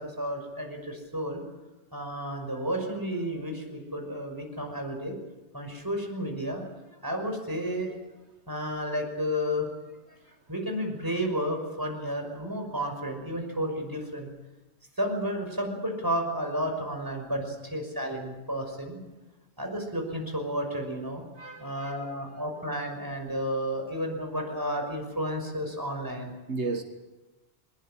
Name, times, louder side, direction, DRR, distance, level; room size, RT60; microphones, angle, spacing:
voice 1, 0.0-1.4 1.9-5.2 5.5-8.0 8.5-9.7 10.5-14.3 15.0-19.0 19.6-21.2 21.6-26.3, equal, 20° right, 3 dB, 5.9 m, -32 dB
voice 2, 21.4-22.1 26.5-26.8, right 3 dB, 80° right, 6 dB, 1.9 m, -34 dB
23.0 x 21.5 x 8.7 m, 1.0 s
omnidirectional pair, 1.1 m